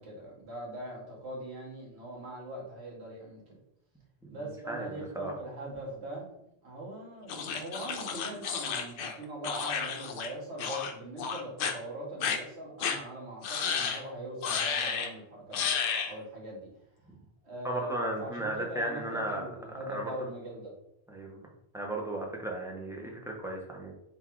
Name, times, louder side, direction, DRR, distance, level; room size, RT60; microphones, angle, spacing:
voice 1, 0.0-3.6 4.3-6.4 6.6-15.7 16.1-16.7 17.4-20.7, right 1 dB, 85° right, -3 dB, 1.6 m, -41 dB
voice 2, 4.7-5.3 17.6-19.5 19.9-20.1 21.1-21.5 21.7-23.9, right 1 dB, 5° right, -1 dB, 0.5 m, -35 dB
sound 1, 7.3-10.3 10.6-10.9 11.2-11.7 12.2-12.4 12.8-13.0 13.4-14.0 14.4-15.1 15.5-16.1, left 6 dB, 65° left, 0.7 m, -32 dB
3.9 x 2.3 x 4.5 m, 0.79 s
omnidirectional pair, 1.1 m